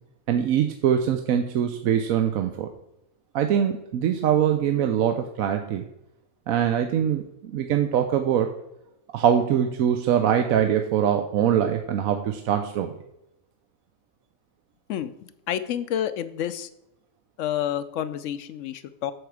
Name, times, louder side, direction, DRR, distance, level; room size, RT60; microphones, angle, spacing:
voice 1, 0.3-2.7 3.3-5.8 6.5-8.5 9.1-13.0, right 9 dB, 80° right, 6 dB, 1.1 m, -23 dB
voice 2, 14.9-16.7 17.4-19.1, left 10 dB, 70° left, 13 dB, 0.9 m, -29 dB
7.9 x 6.9 x 4.8 m, 0.86 s
omnidirectional pair, 1.5 m